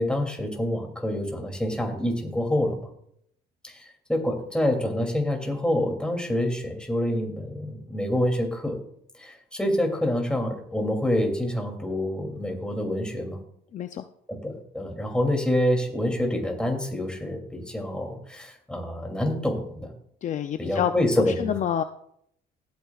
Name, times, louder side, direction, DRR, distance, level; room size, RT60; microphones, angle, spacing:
voice 1, 0.0-2.9 3.6-8.8 9.2-13.4 14.3-19.9 20.6-21.5, left 1 dB, 5° left, 2 dB, 2.8 m, -27 dB
voice 2, 13.7-14.1 20.2-21.8, left 9 dB, 45° left, 8 dB, 0.5 m, -28 dB
17.5 x 9.4 x 2.4 m, 0.69 s
cardioid pair, 110°, 17 cm